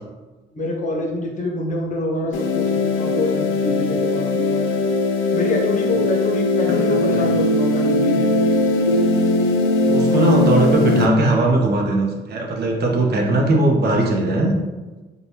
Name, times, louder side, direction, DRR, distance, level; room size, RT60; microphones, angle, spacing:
voice 1, 0.5-4.7 5.3-8.9, left 2 dB, 40° left, 0 dB, 0.7 m, -26 dB
sound 1, 2.3-11.1, left 2 dB, 85° left, 0.4 m, -19 dB
voice 2, 9.9-14.5, right 2 dB, 55° right, 1 dB, 0.6 m, -19 dB
3.2 x 2.3 x 2.7 m, 1.2 s
cardioid pair, 90°, 20 cm